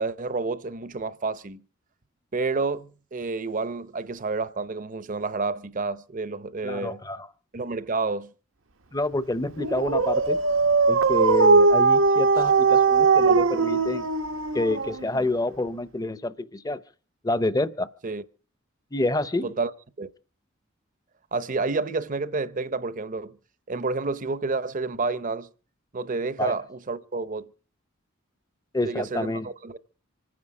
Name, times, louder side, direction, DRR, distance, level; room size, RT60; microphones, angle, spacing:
voice 1, 0.0-1.6 2.3-7.0 7.5-8.3 18.0-18.2 19.4-19.7 20.0-20.1 21.3-23.4 23.7-25.5 25.9-27.5 28.8-29.8, right 3 dB, 40° right, 0.8 m, -29 dB
voice 2, 6.6-7.3 8.9-10.4 10.9-14.1 14.5-16.8 17.2-17.9 18.9-19.5 26.4-26.5 28.7-29.5, left 2 dB, 20° left, 0.8 m, -27 dB
Dog, 9.6-15.3, right 4 dB, 80° right, 1.0 m, -20 dB
26.0 x 9.7 x 4.9 m
head